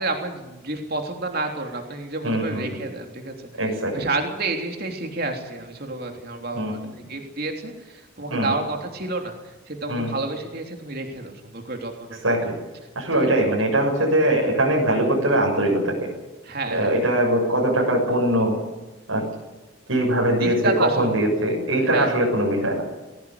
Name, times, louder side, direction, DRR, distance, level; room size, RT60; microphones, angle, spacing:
voice 1, 0.0-3.5 3.9-9.3 9.7-12.2 13.1-13.3 16.4-17.0 20.4-21.1 21.8-22.1, right 2 dB, 45° right, 3 dB, 3.4 m, -30 dB
voice 2, 2.2-2.7 3.6-4.1 6.5-6.9 8.3-8.6 9.9-10.1 12.2-12.5 13.0-16.1 16.7-18.6 19.1-19.2 19.9-22.8, right 1 dB, 80° right, -2 dB, 6.9 m, -21 dB
20.5 x 17.5 x 9.7 m, 1.1 s
head